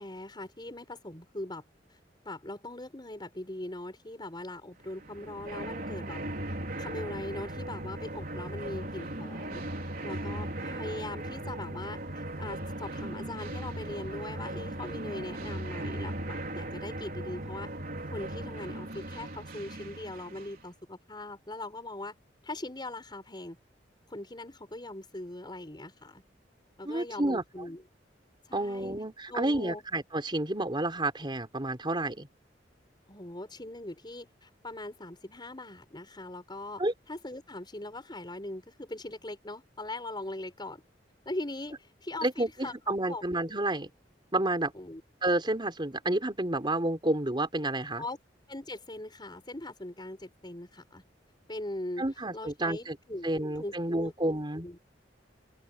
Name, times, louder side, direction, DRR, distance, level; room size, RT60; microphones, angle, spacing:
voice 1, 0.0-1.6 2.3-6.2 6.5-17.7 18.1-22.2 22.4-23.6 24.1-26.2 26.8-27.8 28.5-29.0 29.3-29.8 33.1-36.8 37.1-40.8 41.3-43.2 44.7-45.0 48.0-48.2 48.5-51.0 51.5-52.0 52.3-54.1 54.6-54.8, left 1 dB, 25° left, 5.3 m, -41 dB
sound 1, 4.9-20.6, right 1 dB, 55° right, 3.9 m, -38 dB
voice 2, 26.8-27.4 28.5-32.3 36.8-36.9 42.2-43.9 44.3-44.7 45.2-48.0 52.0-53.0 53.2-54.7, right 1 dB, 25° right, 4.1 m, -30 dB
open air
head